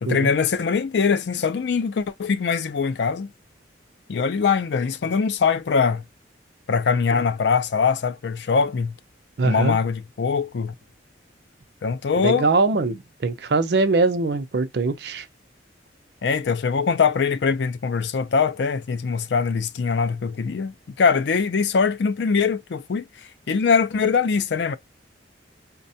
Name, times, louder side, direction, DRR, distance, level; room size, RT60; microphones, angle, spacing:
voice 1, 0.0-3.3 4.1-6.0 6.7-8.9 9.4-10.7 11.8-12.5 16.2-23.1 23.5-24.8, left 5 dB, 65° left, 0.4 m, -22 dB
voice 2, 9.4-9.8 12.2-15.3, right 3 dB, 60° right, 0.5 m, -22 dB
4.0 x 2.2 x 2.6 m
head